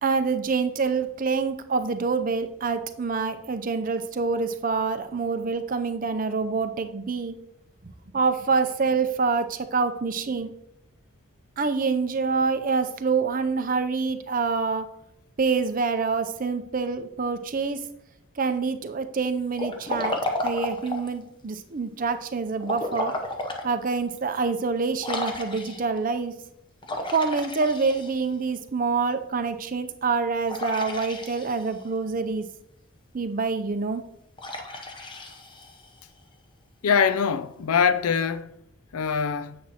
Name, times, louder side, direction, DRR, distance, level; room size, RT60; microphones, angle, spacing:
voice 1, 0.0-7.3 7.8-10.5 11.6-14.9 15.4-17.8 18.4-20.2 20.4-23.1 23.6-26.3 27.1-32.5 33.1-34.0, right 4 dB, 40° right, 0.5 m, -26 dB
Liquid, 19.5-21.2 22.6-23.7 24.2-24.3 25.0-26.0 26.8-28.4 30.5-31.8 34.4-36.0, left 2 dB, 20° left, 0.7 m, -32 dB
voice 2, 36.8-38.6 38.9-39.6, left 6 dB, 90° left, 0.4 m, -23 dB
10.0 x 7.7 x 2.9 m
head